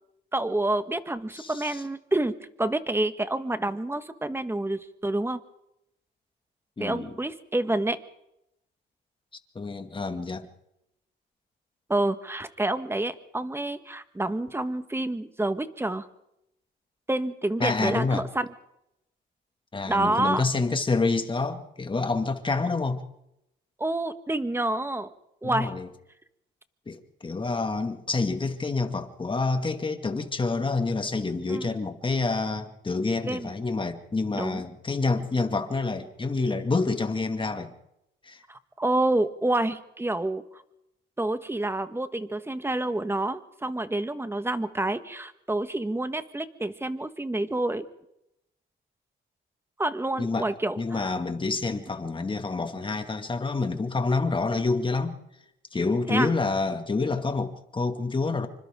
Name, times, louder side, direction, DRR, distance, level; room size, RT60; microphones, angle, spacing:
voice 1, 0.3-5.4 6.8-8.0 11.9-16.1 17.1-18.5 19.9-20.4 23.8-25.1 25.4-25.7 31.5-31.7 33.3-33.5 34.3-34.6 38.5-40.6 41.2-47.8 49.8-51.1 56.1-56.3, right 2 dB, 10° right, 10 dB, 1.6 m, -28 dB
voice 2, 1.3-1.8 6.8-7.1 9.5-10.5 17.6-18.3 19.7-23.0 25.4-25.9 26.9-37.7 38.2-38.4 50.2-50.5 50.8-55.1 55.7-58.5, left 3 dB, 25° left, 7 dB, 2.3 m, -28 dB
27.0 x 25.5 x 3.8 m, 0.84 s
cardioid pair, 90°, 20 cm